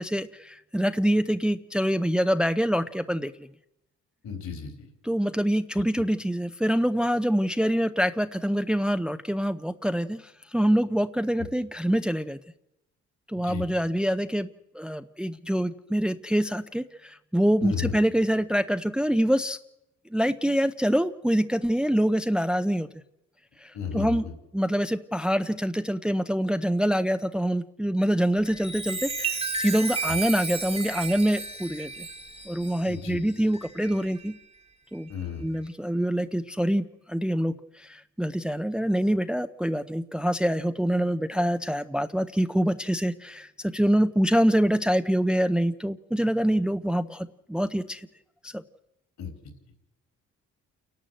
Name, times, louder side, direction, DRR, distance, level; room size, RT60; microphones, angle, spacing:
voice 1, 0.0-3.5 5.0-12.4 13.3-14.5 14.7-19.6 20.1-22.9 23.6-24.2 24.5-31.9 32.5-34.3 34.9-35.1 35.4-48.1 48.4-48.6, equal, 5° right, 10 dB, 0.7 m, -25 dB
voice 2, 4.2-4.9 5.8-5.9 11.4-11.5 13.4-13.6 17.6-17.9 23.7-24.3 30.1-30.2 32.9-33.2 35.1-35.4 49.2-49.3, left 7 dB, 65° left, 6 dB, 4.3 m, -34 dB
Chime, 28.4-34.4 34.9-35.2, right 4 dB, 20° right, 1.5 m, -34 dB
28.5 x 11.5 x 7.8 m, 0.86 s
cardioid pair, 90°, 30 cm